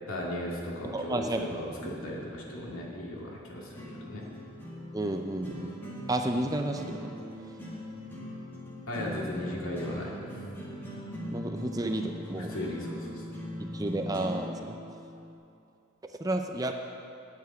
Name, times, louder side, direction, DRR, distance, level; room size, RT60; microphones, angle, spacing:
voice 1, 0.1-4.2 8.9-10.1 12.5-13.3, left 1 dB, 80° left, -3 dB, 2.3 m, -36 dB
voice 2, 0.9-1.4 1.8-1.9 4.9-5.8 6.1-7.2 11.3-12.5 13.6-14.8 16.0-16.7, right 1 dB, 15° right, 5 dB, 0.5 m, -31 dB
sound 1, 1.4-15.3, equal, 10° left, 1.9 m, -41 dB
9.5 x 7.1 x 9.1 m, 2.6 s
head